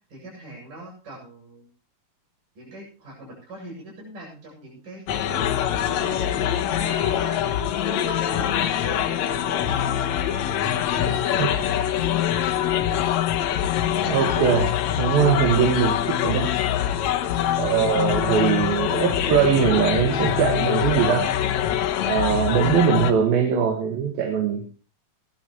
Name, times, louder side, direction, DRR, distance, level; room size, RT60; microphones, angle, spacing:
voice 1, 0.1-1.7 2.6-5.5 5.8-7.4 7.8-9.9 10.6-12.1 12.5-13.1, right 1 dB, 65° right, -2 dB, 9.6 m, -41 dB
sound 1, 5.1-23.1, left 10 dB, 65° left, 1.9 m, -24 dB
voice 2, 13.8-14.7 15.0-16.5 17.6-21.3 22.0-24.6, right 7 dB, 85° right, 3 dB, 3.5 m, -21 dB
19.5 x 12.5 x 3.1 m, 0.37 s
omnidirectional pair, 4.1 m